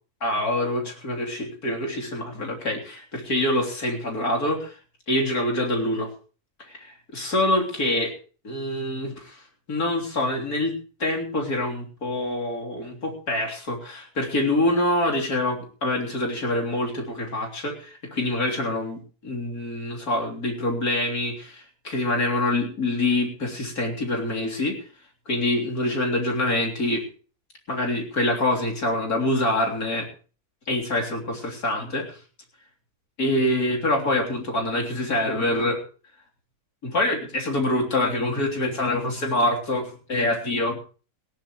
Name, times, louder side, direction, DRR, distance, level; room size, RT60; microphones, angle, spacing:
voice 1, 0.2-4.8 5.1-6.1 6.7-8.1 8.4-9.4 9.7-24.8 25.3-27.0 27.7-30.1 30.7-32.1 33.2-35.8 36.8-40.8, left 1 dB, 65° left, 1 dB, 3.9 m, -25 dB
19.0 x 16.5 x 3.1 m, 0.38 s
omnidirectional pair, 1.7 m